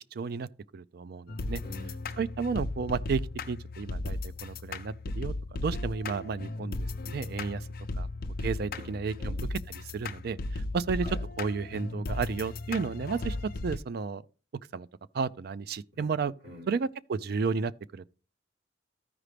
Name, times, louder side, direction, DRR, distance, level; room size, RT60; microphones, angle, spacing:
voice 1, 0.1-1.6 2.2-3.2 3.5-7.7 8.0-8.1 8.4-13.4 13.6-14.2 14.7-14.9 15.1-16.3 16.7-18.1, right 5 dB, 60° right, 0.4 m, -33 dB
sound 1, 1.3-13.8, left 2 dB, 55° left, 0.6 m, -36 dB
voice 2, 1.6-2.2 8.7-8.9 9.2-9.3 11.0-11.2 15.9-16.0 16.4-16.7, left 1 dB, 75° right, 5.1 m, -46 dB
14.0 x 4.9 x 3.3 m
head